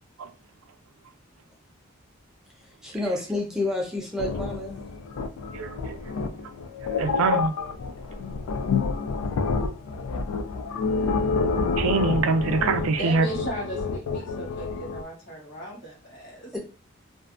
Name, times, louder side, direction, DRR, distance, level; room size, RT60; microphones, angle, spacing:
voice 1, 2.8-4.8 16.5-16.6, left 2 dB, 5° right, 0.5 m, -29 dB
sound 1, 4.2-15.0, left 4 dB, 85° left, 0.4 m, -28 dB
voice 2, 5.5-6.0 7.0-7.5 11.8-13.3, right 4 dB, 80° right, 0.3 m, -24 dB
voice 3, 13.0-16.5, right 1 dB, 55° left, 1.0 m, -36 dB
2.5 x 2.1 x 2.4 m
head